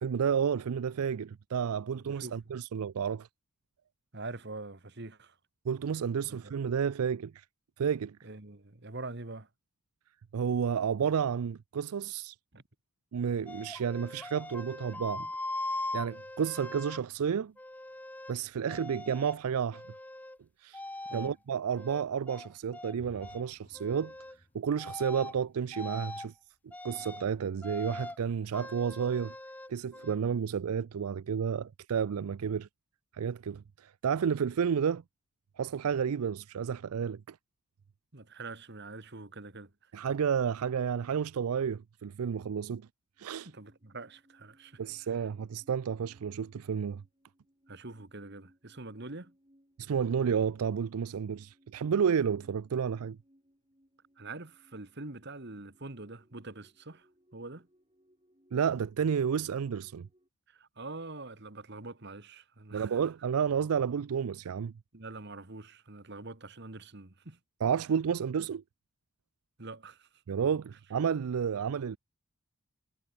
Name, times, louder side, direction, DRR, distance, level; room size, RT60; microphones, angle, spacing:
voice 1, 0.0-3.3 5.7-7.4 7.8-8.2 10.3-12.4 13.1-15.3 15.9-17.5 18.3-19.8 20.6-20.8 21.1-24.1 24.5-26.3 26.8-29.3 29.7-32.7 33.1-35.0 35.6-37.4 39.9-42.9 43.2-43.5 44.8-47.0 49.8-53.2 58.5-60.1 62.7-64.7 67.6-68.6 70.3-72.0, right 7 dB, 80° right, 0.4 m, -31 dB
voice 2, 2.1-2.4 4.1-5.3 6.3-6.5 8.2-9.5 12.5-12.6 21.1-21.3 38.1-39.7 43.4-45.2 47.7-49.3 54.2-57.1 57.3-57.7 60.5-63.0 64.9-67.4 69.6-70.1, right 2 dB, 50° right, 1.6 m, -44 dB
sound 1, 13.5-17.0 17.6-18.4 18.7-19.4 19.7-20.4 20.7-21.3 21.7-22.9 23.2-23.4 23.7-24.4 24.8-25.3 25.7-26.3 26.7-27.3 27.6-28.2 28.5-30.2, left 2 dB, 5° left, 0.7 m, -41 dB
sound 2, 22.9-26.8, equal, 30° left, 4.1 m, -58 dB
sound 3, 43.2-60.3, equal, 25° right, 6.2 m, -67 dB
head